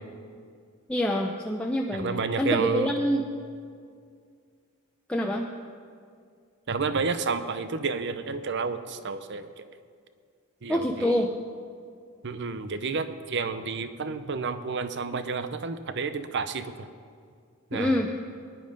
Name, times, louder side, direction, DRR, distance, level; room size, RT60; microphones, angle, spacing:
voice 1, 0.9-3.2 5.1-5.5 10.7-11.3 17.7-18.1, left 1 dB, 5° left, 0 dB, 0.6 m, -26 dB
voice 2, 1.9-2.9 6.7-9.6 10.6-11.2 12.2-16.9 17.7-17.9, right 4 dB, 55° right, 11 dB, 0.7 m, -30 dB
18.5 x 10.5 x 5.3 m, 2.2 s
head